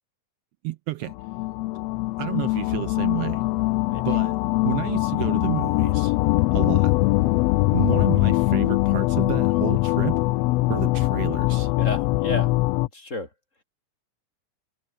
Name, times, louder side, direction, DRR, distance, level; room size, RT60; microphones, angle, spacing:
voice 1, 0.6-1.1 2.2-3.4 4.0-4.4 4.6-6.2 6.5-6.9 7.7-10.2 10.7-11.7, right 17 dB, 85° right, 1.4 m, -30 dB
sound 1, 1.1-12.9, left 20 dB, 80° left, 1.5 m, -22 dB
voice 2, 6.2-6.6 11.8-12.5 12.9-13.3, left 2 dB, 25° left, 4.4 m, -32 dB
omnidirectional pair, 3.3 m